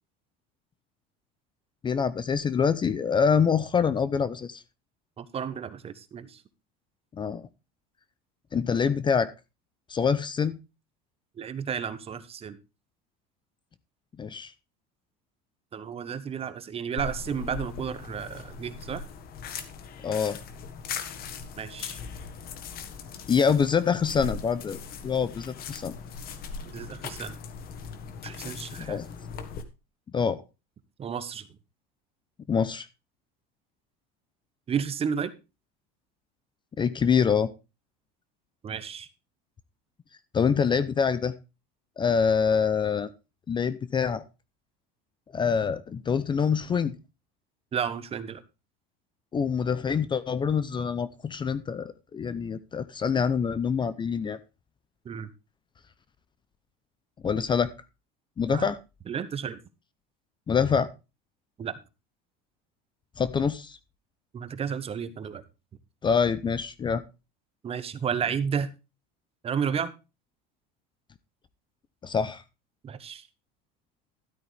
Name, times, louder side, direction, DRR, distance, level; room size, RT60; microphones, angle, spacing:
voice 1, 1.8-4.6 7.2-7.4 8.5-9.3 9.9-10.6 14.2-14.5 20.0-20.4 23.3-24.8 25.0-25.9 28.8-29.1 30.1-30.4 32.5-32.9 36.8-37.5 40.3-41.3 42.0-43.1 43.5-44.2 45.3-46.9 49.3-54.4 57.2-57.7 58.4-58.8 60.5-60.9 63.2-63.8 66.0-67.0 72.0-72.4, left 6 dB, 20° left, 15 dB, 0.7 m, -25 dB
voice 2, 5.2-6.4 11.4-12.6 15.7-19.0 21.6-22.0 26.7-27.4 28.2-29.0 31.0-31.5 34.7-35.3 38.6-39.1 47.7-48.4 55.0-55.3 58.5-58.7 59.1-59.6 61.6-61.8 64.3-65.4 67.6-68.7 69.4-69.9 72.8-73.3, right 7 dB, 30° right, 14 dB, 1.1 m, -32 dB
sound 1, 17.0-29.6, left 6 dB, 45° left, 1.7 m, -39 dB
13.0 x 8.7 x 3.4 m, 0.28 s
supercardioid pair, 125°, 21 cm